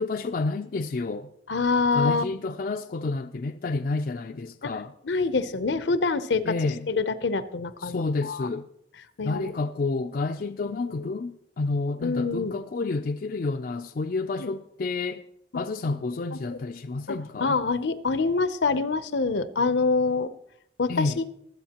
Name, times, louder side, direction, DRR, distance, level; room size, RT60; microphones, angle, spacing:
voice 1, 0.0-1.3 1.9-4.9 6.4-6.9 7.8-8.7 9.2-15.2 15.5-17.6 20.9-21.2, left 3 dB, 50° left, 0.4 m, -29 dB
voice 2, 1.5-2.2 4.6-4.7 5.0-6.5 6.9-8.5 9.2-9.5 10.6-11.1 12.0-12.5 14.4-14.5 17.1-20.3 20.8-21.2, left 4 dB, 80° left, 0.7 m, -26 dB
23.5 x 7.9 x 2.9 m
head